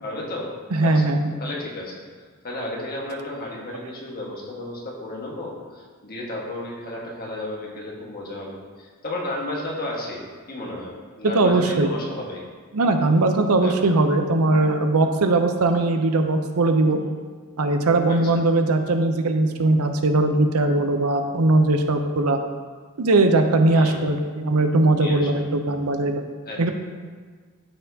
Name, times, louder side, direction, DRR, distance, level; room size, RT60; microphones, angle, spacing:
voice 1, 0.0-0.5 0.8-1.1 1.4-2.0 2.4-12.4 13.6-13.8 18.1-18.4 23.7-24.1 25.0-25.3 26.4-26.7, left 1 dB, 45° left, -3 dB, 1.5 m, -33 dB
voice 2, 0.7-1.2 11.2-11.9 12.7-17.0 17.6-22.4 23.0-26.2 26.6-26.7, right 2 dB, 80° right, 6 dB, 0.6 m, -20 dB
12.5 x 4.3 x 2.8 m, 1.5 s
head